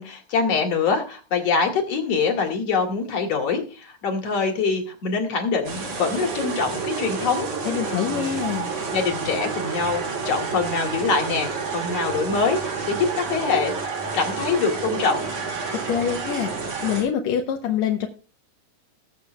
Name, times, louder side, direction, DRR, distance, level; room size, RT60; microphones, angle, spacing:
voice 1, 0.0-7.5 8.0-8.4 8.9-13.9 14.1-15.3, left 5 dB, 60° left, 2 dB, 2.9 m, -24 dB
sound 1, 5.6-17.0, right 5 dB, 75° right, 4.7 m, -29 dB
voice 2, 7.7-8.7 15.9-16.5 16.8-18.1, left 9 dB, 75° left, 3 dB, 2.0 m, -25 dB
20.0 x 7.3 x 2.3 m, 0.36 s
omnidirectional pair, 3.4 m